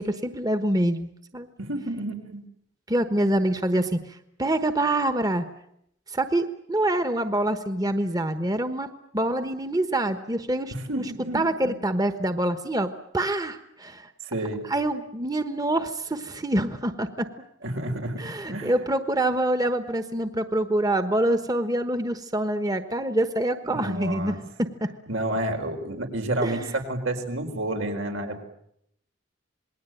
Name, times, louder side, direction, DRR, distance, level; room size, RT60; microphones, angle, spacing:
voice 1, 0.0-1.5 2.9-5.5 6.1-8.9 9.1-10.7 11.3-14.1 14.7-17.3 18.2-24.7 26.4-26.7, right 1 dB, 20° right, 9 dB, 1.2 m, -26 dB
voice 2, 1.6-2.4 10.7-11.7 14.2-14.6 17.6-18.7 23.7-24.4 25.1-28.5, right 1 dB, 85° right, 4 dB, 4.6 m, -30 dB
27.5 x 20.5 x 9.1 m, 0.74 s
head